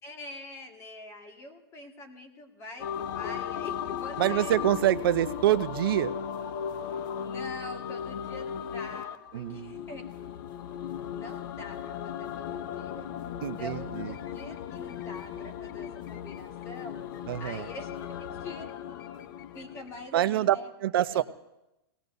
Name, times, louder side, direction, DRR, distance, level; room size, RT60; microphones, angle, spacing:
voice 1, 0.0-4.5 6.9-10.0 11.1-13.1 13.6-17.1 17.4-18.7 19.5-20.7 21.1-21.2, left 2 dB, 20° left, 4 dB, 1.8 m, -45 dB
sound 1, 2.8-20.1, left 8 dB, 55° left, 0.8 m, -37 dB
voice 2, 4.2-6.1 9.3-9.8 13.4-14.1 17.3-17.6 20.1-20.6 20.8-21.2, right 13 dB, 65° right, 14 dB, 0.6 m, -26 dB
26.0 x 18.0 x 2.7 m, 0.93 s
hypercardioid pair, 150°, 13 cm